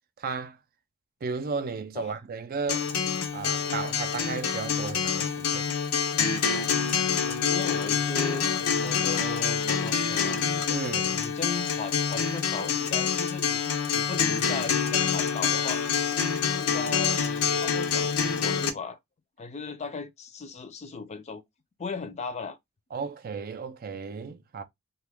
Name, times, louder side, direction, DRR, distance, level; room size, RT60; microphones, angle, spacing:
voice 1, 0.2-0.6 1.2-2.9 3.3-5.7 10.7-11.2 22.9-24.6, right 5 dB, 40° right, 0.3 m, -34 dB
Acoustic guitar, 2.7-18.7, left 7 dB, 90° left, 0.6 m, -26 dB
voice 2, 7.2-10.4 11.0-13.6 13.9-15.8 16.4-19.0 19.4-21.4 21.8-22.6, left 4 dB, 30° left, 0.4 m, -37 dB
2.9 x 2.3 x 3.3 m
head